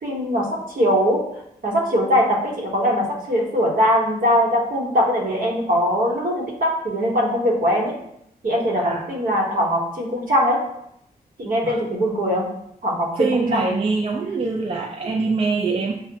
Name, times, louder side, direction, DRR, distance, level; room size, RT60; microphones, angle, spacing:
voice 1, 0.0-1.2 1.6-8.0 8.4-10.6 11.4-12.5 12.8-13.7, equal, 60° right, -1 dB, 1.0 m, -21 dB
voice 2, 13.2-16.0, right 4 dB, 40° right, 0 dB, 0.4 m, -24 dB
5.5 x 2.1 x 2.7 m, 0.76 s
cardioid pair, 65°, 16 cm